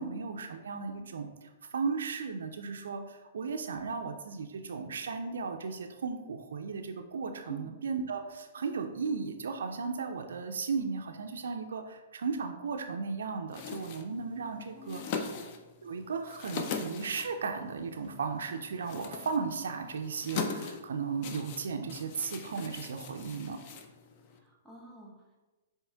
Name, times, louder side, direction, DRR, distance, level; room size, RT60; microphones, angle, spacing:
voice 1, 0.0-15.0 15.8-23.6, right 5 dB, 65° right, 5 dB, 0.4 m, -35 dB
sound 1, 13.5-24.4, left 5 dB, 45° left, 0.5 m, -41 dB
voice 2, 14.7-15.3 24.3-25.4, left 3 dB, 5° left, -3 dB, 1.2 m, -49 dB
7.2 x 3.1 x 2.2 m, 1.2 s
figure-of-eight pair, 115°, 0 cm